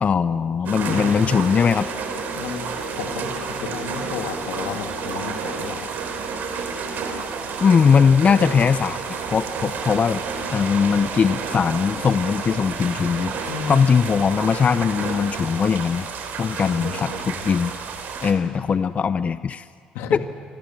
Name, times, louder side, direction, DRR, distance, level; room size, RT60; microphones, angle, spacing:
voice 1, 0.0-1.9 7.6-10.2 10.5-16.1 16.4-17.7 18.2-19.7 20.1-20.2, left 6 dB, 45° left, 13 dB, 0.7 m, -20 dB
sound 1, 0.6-18.3, right 5 dB, 70° right, 3.9 m, -30 dB
voice 2, 0.8-1.4 2.3-2.7 3.0-5.9 13.5-13.9 16.6-17.5 18.3-18.7 19.9-20.2, left 7 dB, 85° left, 5 dB, 2.3 m, -33 dB
29.5 x 24.0 x 7.4 m, 2.3 s
supercardioid pair, 70°, 3 cm